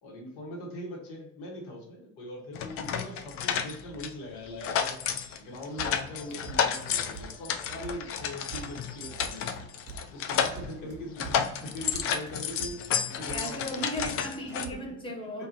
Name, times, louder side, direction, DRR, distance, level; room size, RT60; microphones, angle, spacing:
voice 1, 0.0-5.0 5.4-9.5 10.1-14.1 14.7-14.9 15.4-15.5, left 1 dB, 65° left, 1.2 m, -41 dB
sound 1, 2.5-4.1 4.5-10.9 11.2-14.7, left 8 dB, 35° left, 0.4 m, -31 dB
sound 2, 5.7-14.8, right 4 dB, 30° right, 0.9 m, -46 dB
voice 2, 13.3-15.5, equal, 15° left, 0.7 m, -36 dB
2.5 x 2.4 x 2.8 m
hypercardioid pair, 65°, 39 cm